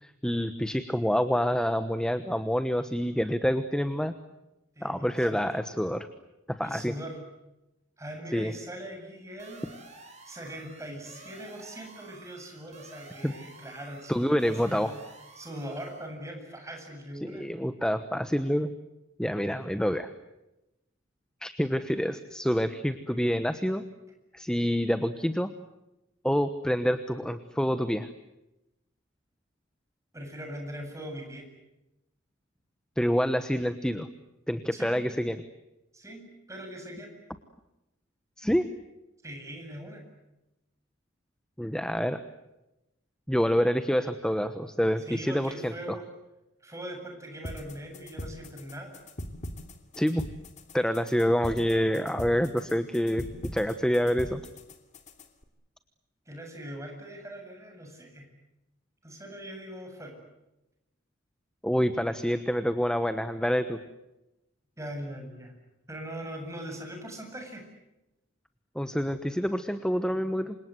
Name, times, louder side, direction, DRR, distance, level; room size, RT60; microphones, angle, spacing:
voice 1, 0.0-4.2 4.8-6.1 6.5-6.9 8.3-8.5 13.2-13.3 14.1-14.9 17.2-18.7 19.2-20.1 21.4-23.8 24.3-25.5 26.2-28.1 33.0-34.1 34.5-35.4 38.4-38.7 41.6-42.2 43.3-46.0 50.0-50.2 50.7-54.4 61.6-63.8 68.7-70.6, equal, 5° left, 10 dB, 1.1 m, -27 dB
voice 2, 4.8-5.4 6.6-7.2 8.0-9.7 10.2-14.9 15.4-17.5 30.1-31.5 34.7-35.0 35.9-37.2 39.2-40.0 45.1-46.1 46.6-49.0 56.3-58.3 59.0-60.2 64.8-65.5 65.9-67.6, equal, 15° right, 3 dB, 8.0 m, -41 dB
sound 1, 9.4-16.1, right 2 dB, 35° right, 7.2 m, -51 dB
sound 2, 47.4-55.4, equal, 40° left, 2.7 m, -42 dB
29.0 x 26.5 x 7.9 m, 0.96 s
head